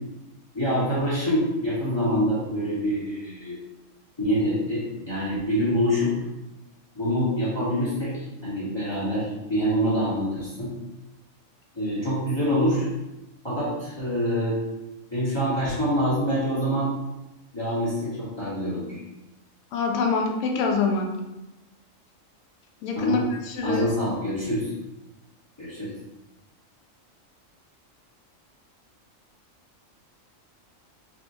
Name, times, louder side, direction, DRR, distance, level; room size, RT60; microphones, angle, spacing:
voice 1, 0.5-3.6 4.2-6.1 6.9-10.7 11.7-12.9 13.4-14.6 15.1-16.9 17.5-19.0 22.9-23.2 23.6-24.7 25.6-25.9, equal, 20° left, -11 dB, 1.2 m, -25 dB
voice 2, 19.7-21.1 22.8-23.2 23.4-23.9, left 4 dB, 75° left, 1 dB, 0.9 m, -25 dB
4.9 x 2.9 x 2.6 m, 0.98 s
omnidirectional pair, 1.4 m